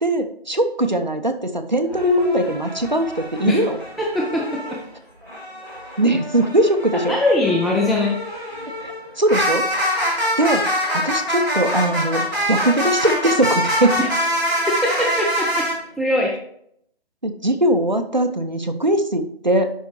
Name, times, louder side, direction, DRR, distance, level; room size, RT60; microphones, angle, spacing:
voice 1, 0.0-3.8 6.0-7.2 8.8-9.6 10.4-10.6 10.9-14.0 17.2-19.7, right 1 dB, 45° right, 7 dB, 0.6 m, -20 dB
sound 1, 1.9-4.8 5.2-15.7, equal, 20° right, 1.9 m, -25 dB
voice 2, 4.0-4.4 4.7-4.8 6.9-8.2 14.0-14.1 14.8-15.7 16.0-16.4, left 1 dB, ahead, -2 dB, 0.4 m, -21 dB
11.0 x 4.6 x 3.0 m, 0.71 s
figure-of-eight pair, 175°, 31 cm